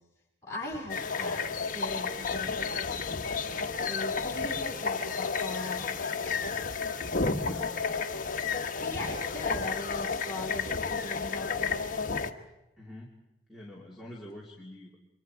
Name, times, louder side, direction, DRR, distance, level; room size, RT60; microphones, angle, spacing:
voice 1, 0.4-3.0 3.4-6.5 7.4-7.9 8.8-11.8, left 1 dB, 15° left, -3 dB, 7.7 m, -40 dB
sound 1, 0.9-12.3, left 5 dB, 45° left, 1.1 m, -32 dB
voice 2, 7.4-7.8 9.3-9.7 12.8-13.1 13.5-15.0, left 1 dB, ahead, -2 dB, 2.5 m, -46 dB
29.5 x 24.5 x 4.7 m, 0.96 s
head